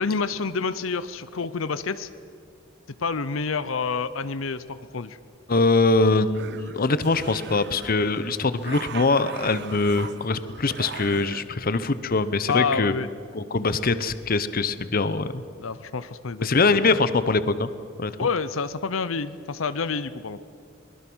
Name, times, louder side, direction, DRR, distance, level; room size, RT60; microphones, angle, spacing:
voice 1, 0.0-2.1 3.0-5.2 12.5-13.1 15.6-16.9 18.2-20.4, left 5 dB, 90° left, 14 dB, 0.7 m, -28 dB
voice 2, 5.5-13.0 13.3-15.4 16.4-17.7 18.0-18.1, left 3 dB, 45° left, 14 dB, 0.8 m, -23 dB
sound 1, 6.1-11.4, right 6 dB, 60° right, 0.9 m, -39 dB
23.5 x 20.5 x 6.3 m, 2.5 s
head